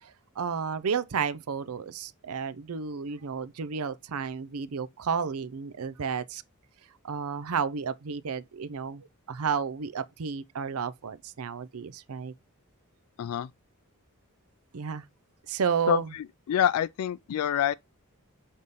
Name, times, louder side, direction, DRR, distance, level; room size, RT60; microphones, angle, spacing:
voice 1, 0.0-6.4 7.0-12.3 14.7-15.1 15.5-16.1, right 6 dB, 70° right, 0.5 m, -32 dB
voice 2, 16.5-17.7, left 9 dB, 75° left, 0.3 m, -26 dB
6.6 x 3.6 x 4.0 m
head